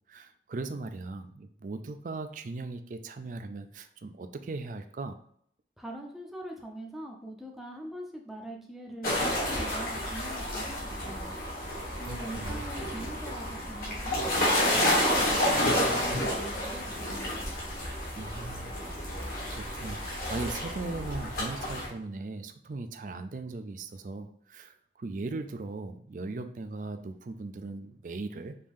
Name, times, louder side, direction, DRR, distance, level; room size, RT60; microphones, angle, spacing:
voice 1, 0.1-5.2 12.1-12.7 18.2-18.7 19.2-28.6, right 3 dB, 45° right, 9 dB, 0.4 m, -39 dB
voice 2, 5.8-11.3 12.0-17.4, right 1 dB, ahead, 0 dB, 0.6 m, -43 dB
sound 1, 9.0-21.9, left 1 dB, 55° left, 1.6 m, -30 dB
5.1 x 2.7 x 3.5 m, 0.64 s
head